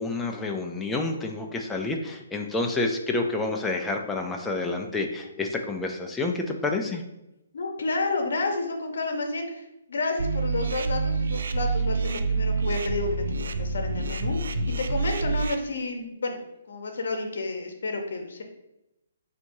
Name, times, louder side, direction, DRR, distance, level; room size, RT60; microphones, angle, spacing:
voice 1, 0.0-7.0, left 3 dB, 5° left, 1 dB, 0.4 m, -29 dB
voice 2, 7.5-16.4 16.7-18.4, left 3 dB, 70° left, 4 dB, 0.8 m, -30 dB
sound 1, 10.2-15.5, right 3 dB, 70° right, 0.4 m, -27 dB
5.8 x 2.7 x 2.7 m, 0.90 s
hypercardioid pair, 155°, 0 cm